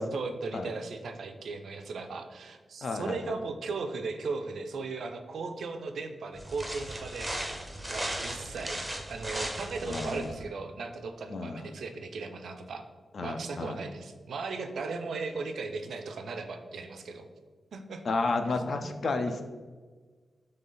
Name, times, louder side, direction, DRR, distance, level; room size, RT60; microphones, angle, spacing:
voice 1, 0.1-7.3 7.9-8.8 9.1-12.8 13.2-17.3 17.7-18.0, right 4 dB, 75° right, 6 dB, 0.4 m, -37 dB
voice 2, 2.8-3.2 9.9-10.3 11.3-11.7 13.1-13.8 18.0-19.4, left 3 dB, 50° left, 6 dB, 0.4 m, -31 dB
sound 1, 6.3-10.4, right 1 dB, 5° right, 0.5 m, -37 dB
3.9 x 3.2 x 3.8 m, 1.4 s
wide cardioid pair, 165°, 0 cm